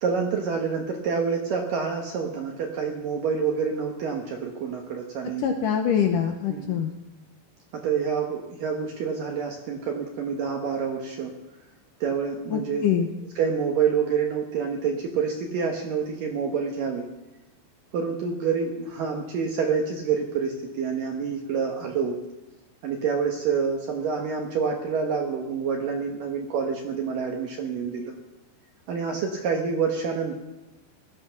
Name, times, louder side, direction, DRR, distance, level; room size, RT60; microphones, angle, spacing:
voice 1, 0.0-5.5 6.5-6.9 7.7-11.3 12.0-12.9 13.4-17.1 17.9-22.2 22.8-28.1 28.9-30.3, right 6 dB, 65° right, 1 dB, 2.5 m, -27 dB
voice 2, 5.4-6.9 12.5-13.1, left 8 dB, 75° left, 4 dB, 1.9 m, -24 dB
17.0 x 12.5 x 5.9 m, 1.0 s
omnidirectional pair, 5.0 m